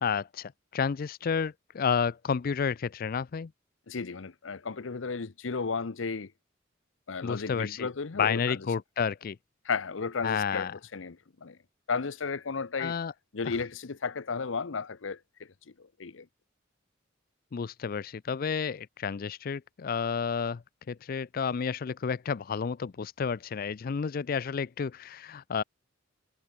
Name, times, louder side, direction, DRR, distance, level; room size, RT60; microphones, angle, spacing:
voice 1, 0.0-3.5 7.2-7.9 8.1-9.4 10.2-10.8 12.8-13.1 13.4-13.6 17.5-25.6, left 6 dB, 50° left, 0.4 m, -31 dB
voice 2, 3.9-6.3 7.1-8.6 9.6-11.6 11.9-12.9 13.3-15.5 15.8-16.3, left 5 dB, 85° left, 0.8 m, -34 dB
head